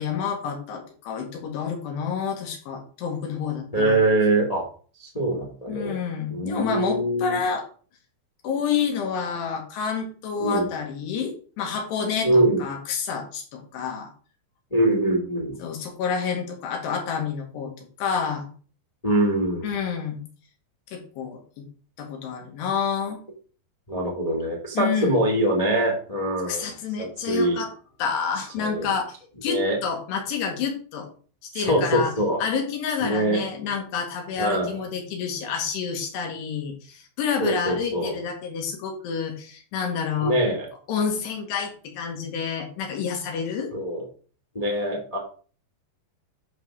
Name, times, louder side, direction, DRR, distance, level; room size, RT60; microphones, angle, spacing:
voice 1, 0.0-4.0 5.7-7.7 8.4-14.1 15.6-17.7 18.0-18.5 19.6-20.2 20.9-21.6 22.0-23.2 24.8-25.2 26.5-27.7 28.0-29.1 29.4-31.1 31.5-32.1 32.4-40.4 40.9-43.7, left 6 dB, 75° left, 1 dB, 3.9 m, -29 dB
voice 2, 3.7-4.6 5.0-5.9 6.3-7.4 10.4-10.7 12.2-12.6 14.7-15.6 19.0-19.7 23.9-26.7 27.0-27.6 28.6-28.9 29.5-29.8 31.5-32.4 33.0-33.4 34.4-34.8 37.4-38.2 40.2-40.7 43.7-44.0 44.5-45.2, right 1 dB, 20° left, -1 dB, 0.9 m, -23 dB
11.5 x 3.8 x 6.2 m, 0.41 s
omnidirectional pair, 4.9 m